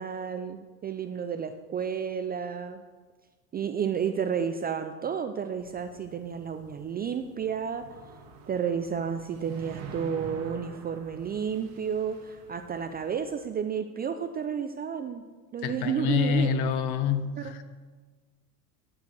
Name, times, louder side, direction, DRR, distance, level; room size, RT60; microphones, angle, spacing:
voice 1, 0.0-2.8 3.5-7.9 8.5-15.2 15.5-16.5, right 7 dB, 20° right, 8 dB, 0.3 m, -31 dB
sound 1, 5.6-13.4, right 4 dB, 60° right, 1.7 m, -47 dB
voice 2, 15.6-17.6, left 7 dB, 55° left, 11 dB, 1.0 m, -27 dB
10.0 x 5.5 x 6.8 m, 1.4 s
supercardioid pair, 100°, 47 cm